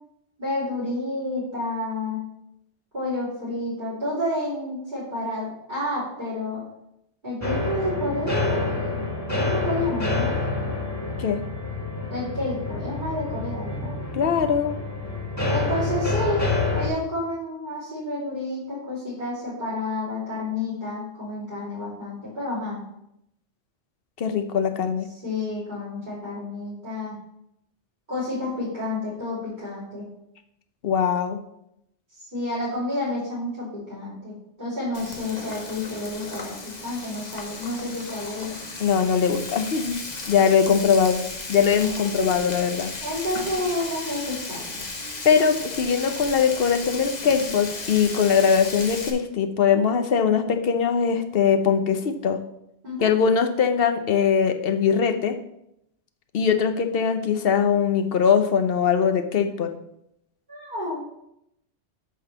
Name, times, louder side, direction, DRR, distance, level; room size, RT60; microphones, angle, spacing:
voice 1, 0.4-2.2 2.9-6.6 7.2-9.1 9.4-10.3 12.1-13.9 15.5-22.8 25.1-27.2 28.1-30.1 32.2-38.6 42.2-42.3 43.0-44.8 52.8-53.1 60.5-61.0, left 1 dB, 40° right, -9 dB, 3.8 m, -30 dB
sound 1, 7.4-16.9, left 3 dB, 15° left, 1.6 m, -27 dB
voice 2, 14.1-14.8 24.2-25.1 30.8-31.4 38.8-40.0 40.3-41.2 41.5-42.9 45.2-52.4 53.0-55.4 56.3-59.7, left 7 dB, 60° left, 7 dB, 0.9 m, -21 dB
Frying (food), 34.9-49.1, left 3 dB, 40° left, 1.2 m, -35 dB
8.5 x 4.0 x 7.0 m, 0.80 s
omnidirectional pair, 1.2 m